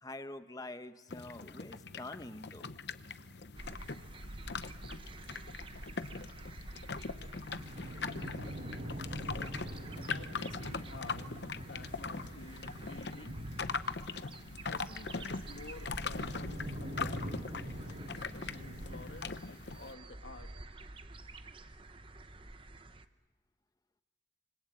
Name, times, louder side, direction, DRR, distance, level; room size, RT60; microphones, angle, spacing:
voice 1, 0.0-2.7, left 2 dB, 20° left, 10 dB, 1.0 m, -46 dB
sound 1, 1.1-19.9, left 4 dB, 60° left, 0.8 m, -42 dB
sound 2, 2.3-5.3 5.7-5.8 5.9-6.0 6.3-6.4 6.9-14.6 14.9-19.2, equal, 60° right, 5.3 m, -45 dB
sound 3, 3.6-23.1, right 2 dB, 25° right, 0.8 m, -49 dB
voice 2, 10.1-11.3 11.6-13.4 14.7-17.4 18.1-20.5, left 2 dB, 80° left, 7 dB, 1.7 m, -51 dB
26.0 x 25.0 x 7.7 m, 1.2 s
head